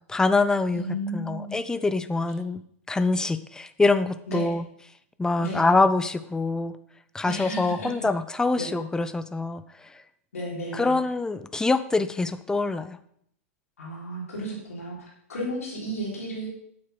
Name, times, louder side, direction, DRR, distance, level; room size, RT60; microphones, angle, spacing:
voice 1, 0.1-0.9 1.1-2.6 2.9-4.6 5.2-6.8 7.1-9.6 10.7-13.0, left 3 dB, 10° left, 12 dB, 0.7 m, -24 dB
voice 2, 0.7-1.6 4.3-4.6 5.4-5.7 7.2-8.1 8.6-8.8 10.3-11.0 13.8-16.5, equal, 90° left, -3 dB, 3.9 m, -33 dB
8.7 x 8.0 x 5.4 m, 0.69 s
hypercardioid pair, 115°, 8 cm